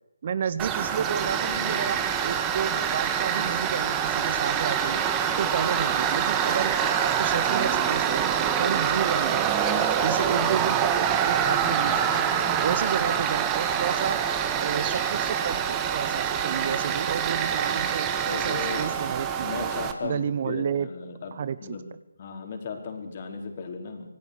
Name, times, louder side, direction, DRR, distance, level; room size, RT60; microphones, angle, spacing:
voice 1, 0.2-5.0 5.4-6.8 7.0-9.7 10.0-12.2 12.6-14.2 14.6-19.7 20.0-20.9 21.3-21.8, right 7 dB, 40° right, 16 dB, 1.0 m, -31 dB
Tools, 0.6-19.9, right 8 dB, 15° right, 1.7 m, -25 dB
voice 2, 1.4-1.9 10.1-10.6 11.5-12.0 16.5-16.8 18.3-18.9 19.4-21.9 22.2-24.1, left 5 dB, 35° left, 4 dB, 4.6 m, -37 dB
26.5 x 18.5 x 6.8 m, 0.80 s
figure-of-eight pair, 155°, 0 cm